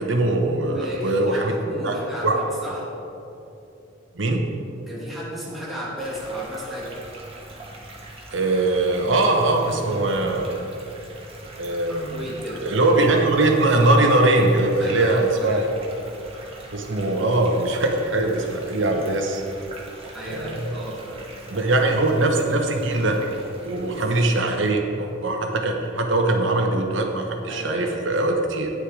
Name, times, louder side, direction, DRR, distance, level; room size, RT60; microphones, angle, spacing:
voice 1, 0.0-1.5 1.8-2.0 2.2-2.4 4.1-4.4 8.3-10.5 11.6-12.2 12.6-15.7 16.7-19.4 20.4-20.8 21.5-23.2 23.6-28.7, right 2 dB, 75° right, 3 dB, 1.1 m, -21 dB
voice 2, 0.6-2.9 4.9-7.0 11.9-12.7 14.8-15.9 20.1-21.3 23.9-24.0 27.5-28.2, equal, ahead, -7 dB, 2.0 m, -34 dB
sound 1, 6.0-24.7, right 2 dB, 30° right, 1.6 m, -42 dB
9.8 x 6.5 x 4.9 m, 2.8 s
head